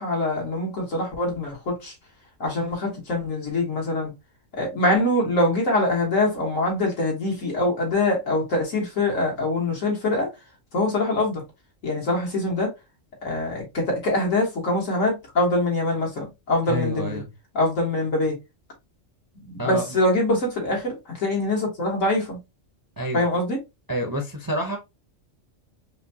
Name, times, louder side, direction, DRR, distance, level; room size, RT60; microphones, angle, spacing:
voice 1, 0.0-1.9 2.4-4.1 4.5-10.3 10.7-11.4 11.8-12.7 13.2-17.2 17.5-18.4 19.4-22.4 23.1-23.6, left 2 dB, 80° left, 2.0 m, -24 dB
voice 2, 16.7-17.3 19.6-19.8 23.0-23.3 23.9-24.8, right 1 dB, 25° right, 0.5 m, -28 dB
4.9 x 2.3 x 2.7 m
omnidirectional pair, 1.3 m